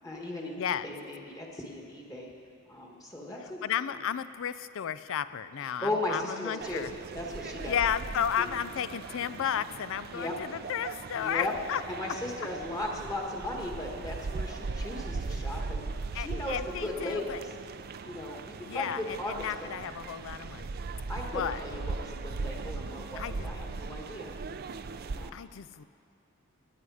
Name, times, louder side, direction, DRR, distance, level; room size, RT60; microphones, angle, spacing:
voice 1, 0.0-2.3 2.7-3.6 3.9-4.0 5.6-7.8 8.4-8.5 10.1-10.3 11.1-11.5 11.9-15.8 16.1-17.5 18.0-19.5 21.1-24.3 25.0-25.3, left 1 dB, 15° left, 0 dB, 1.6 m, -37 dB
voice 2, 0.6-0.9 3.6-6.9 7.7-11.8 16.1-17.4 18.7-20.7 21.3-21.6 23.2-23.5 25.3-25.8, left 9 dB, 65° left, 14 dB, 0.4 m, -33 dB
sound 1, 6.6-25.3, right 4 dB, 45° right, 0.5 m, -39 dB
17.5 x 9.8 x 4.9 m, 2.3 s
head